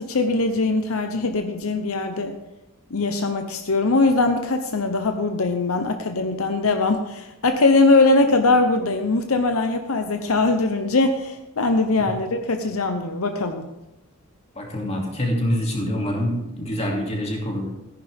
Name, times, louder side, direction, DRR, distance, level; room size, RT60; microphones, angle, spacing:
voice 1, 0.0-2.3 2.9-13.7, left 3 dB, 80° left, 6 dB, 0.9 m, -21 dB
voice 2, 14.6-17.7, equal, 30° left, 0 dB, 2.6 m, -25 dB
14.0 x 10.5 x 3.6 m, 0.92 s
head